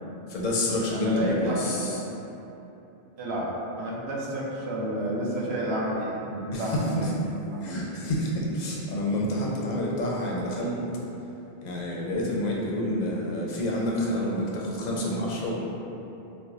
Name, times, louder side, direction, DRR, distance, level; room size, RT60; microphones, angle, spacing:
voice 1, 0.3-2.0 6.5-7.1 7.6-10.8 11.6-15.6, left 1 dB, 55° left, -4 dB, 0.6 m, -28 dB
voice 2, 0.9-1.7 3.2-3.5 3.8-7.2 7.5-7.9, equal, 90° right, -4 dB, 0.9 m, -30 dB
4.4 x 2.1 x 2.5 m, 3.0 s
omnidirectional pair, 1.0 m